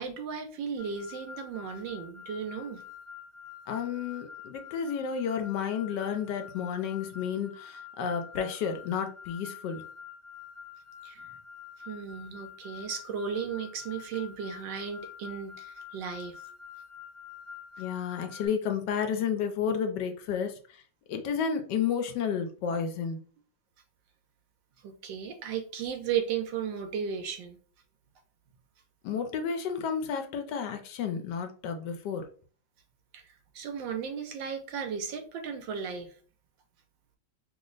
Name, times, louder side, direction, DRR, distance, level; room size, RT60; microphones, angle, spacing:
voice 1, 0.0-2.8 11.0-11.3 11.9-16.4 24.8-27.6 33.1-36.1, right 7 dB, 90° right, 6 dB, 1.4 m, -35 dB
sound 1, 0.8-18.5, left 8 dB, 50° right, 0.8 m, -47 dB
voice 2, 3.7-9.8 17.8-20.8 21.1-23.2 29.0-32.2, left 7 dB, 75° left, 6 dB, 1.2 m, -31 dB
3.3 x 2.0 x 3.7 m, 0.41 s
omnidirectional pair, 2.0 m